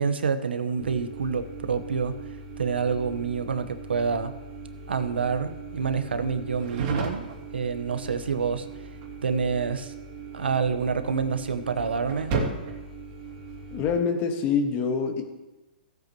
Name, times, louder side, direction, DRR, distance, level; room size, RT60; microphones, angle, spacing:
voice 1, 0.0-2.1 2.6-4.3 4.9-7.3 7.5-8.7 9.2-9.9 10.3-12.4, right 5 dB, 85° right, 10 dB, 1.0 m, -27 dB
sound 1, 0.8-14.0, right 3 dB, 40° right, 2.7 m, -37 dB
voice 2, 13.7-15.2, left 5 dB, 30° left, 5 dB, 1.5 m, -25 dB
17.5 x 7.9 x 3.0 m, 1.1 s
hypercardioid pair, 135°, 6 cm